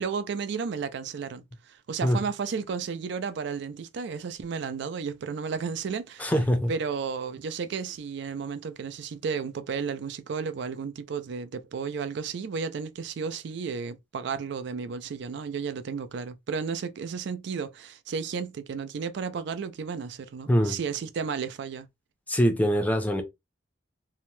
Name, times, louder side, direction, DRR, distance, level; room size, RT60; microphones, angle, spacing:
voice 1, 0.0-6.3 6.7-21.9, right 5 dB, 65° right, 0.4 m, -33 dB
voice 2, 6.2-6.7 20.5-20.8 22.3-23.2, equal, 10° left, 0.5 m, -23 dB
2.7 x 2.1 x 3.0 m
head